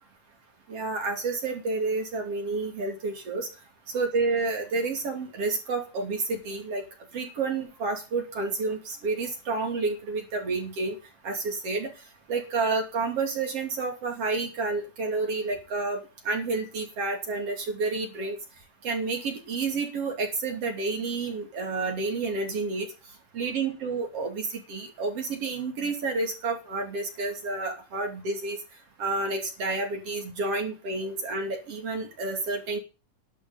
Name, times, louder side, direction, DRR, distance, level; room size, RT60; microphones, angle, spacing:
voice 1, 0.7-3.5 3.9-6.8 7.1-11.0 11.2-11.9 12.3-16.0 16.2-18.4 18.8-22.9 23.3-28.6 29.0-32.8, right 3 dB, 50° right, 2 dB, 3.6 m, -30 dB
11.5 x 6.3 x 7.8 m, 0.31 s
omnidirectional pair, 3.6 m